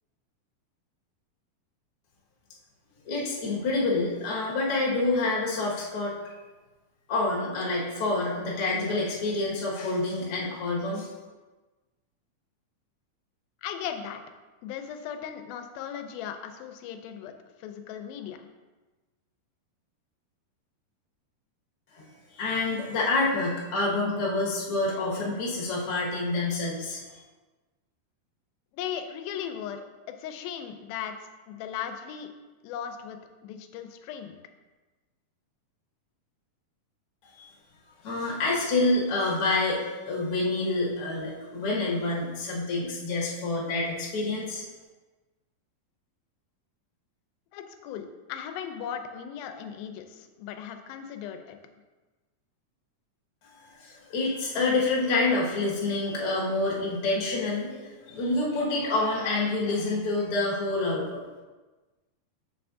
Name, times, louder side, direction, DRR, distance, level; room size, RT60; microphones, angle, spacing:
voice 1, 3.1-6.3 7.1-11.1 21.9-22.1 22.3-27.0 37.4-37.5 38.0-44.6 53.7-61.2, left 2 dB, 50° left, -5 dB, 2.0 m, -27 dB
voice 2, 13.6-14.2 14.6-17.3 17.6-18.5 28.7-31.1 31.5-32.3 32.6-33.2 33.4-34.4 47.5-51.6, left 8 dB, 85° left, 7 dB, 2.4 m, -37 dB
7.2 x 6.7 x 2.6 m, 1.2 s
omnidirectional pair, 4.1 m